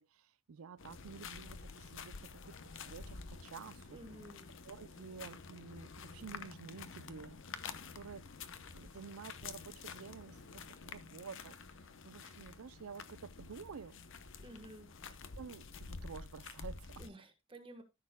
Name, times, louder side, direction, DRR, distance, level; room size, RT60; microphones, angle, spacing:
voice 1, 0.0-4.0 4.6-8.2 8.7-11.6 12.0-14.0 15.4-17.0, right 5 dB, 85° right, 0.5 m, -51 dB
sound 1, 0.8-17.1, left 5 dB, 65° left, 0.8 m, -49 dB
voice 2, 3.9-4.5 14.4-14.9 17.0-17.8, right 1 dB, 25° right, 1.3 m, -52 dB
14.0 x 6.6 x 2.2 m
head